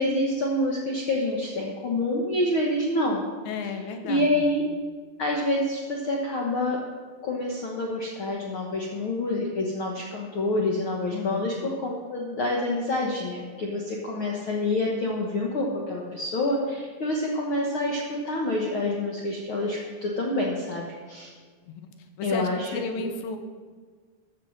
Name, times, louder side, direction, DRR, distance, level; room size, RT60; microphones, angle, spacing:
voice 1, 0.0-3.2 4.1-4.6 5.2-6.8 7.2-21.3 22.2-22.7 23.0-23.1, left 1 dB, 70° left, -1 dB, 1.3 m, -27 dB
voice 2, 3.5-4.5 11.1-11.6 21.7-21.9 22.2-23.4, left 4 dB, 90° left, 6 dB, 2.8 m, -34 dB
13.5 x 6.4 x 6.2 m, 1.6 s
omnidirectional pair, 4.1 m